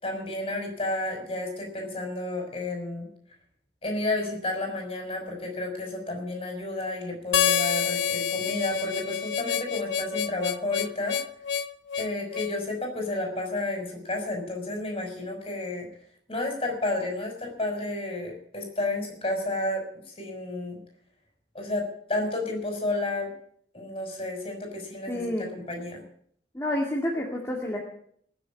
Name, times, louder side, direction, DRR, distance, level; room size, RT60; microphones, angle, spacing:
voice 1, 0.0-3.1 3.8-11.2 12.0-15.9 16.3-20.8 21.5-23.3 23.7-26.0, left 2 dB, 30° left, 2 dB, 5.6 m, -31 dB
Harmonica, 7.3-12.6, left 8 dB, 90° left, 0.7 m, -28 dB
voice 2, 25.1-25.4 26.5-27.8, left 1 dB, 15° left, -2 dB, 2.3 m, -29 dB
20.0 x 7.5 x 8.6 m, 0.62 s
head